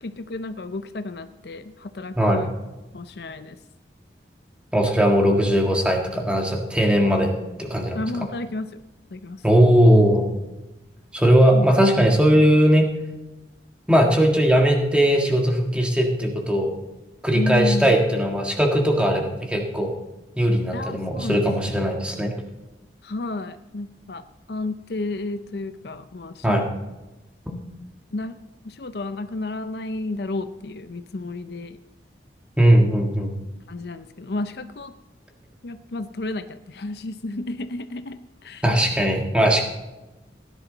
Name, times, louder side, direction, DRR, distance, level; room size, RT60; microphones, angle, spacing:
voice 1, 0.0-2.5 2.9-3.6 7.9-8.8 9.1-9.4 11.5-11.8 17.3-17.9 20.7-21.8 23.0-24.2 24.5-26.7 28.1-28.4 28.6-31.8 33.7-34.9 35.6-38.6, left 2 dB, 60° left, 10 dB, 0.6 m, -31 dB
voice 2, 2.2-2.5 4.7-7.3 7.6-8.0 9.4-10.3 11.1-12.9 13.9-16.7 17.2-19.9 20.4-22.3 26.4-26.6 27.5-27.6 32.6-33.3 38.6-39.6, equal, 5° right, 1 dB, 1.7 m, -19 dB
17.0 x 10.5 x 4.0 m, 1.0 s
head